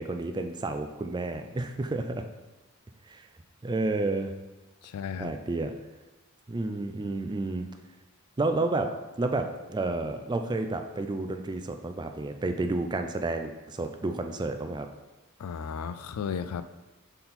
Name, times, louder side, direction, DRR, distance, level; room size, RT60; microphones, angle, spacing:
voice 1, 0.0-2.2 3.1-3.3 3.6-4.3 5.2-5.7 6.5-7.7 8.4-14.9, right 2 dB, 20° right, 6 dB, 0.3 m, -30 dB
voice 2, 4.8-5.3 15.4-16.7, left 6 dB, 85° left, 12 dB, 0.4 m, -34 dB
5.6 x 4.0 x 4.3 m, 1.1 s
head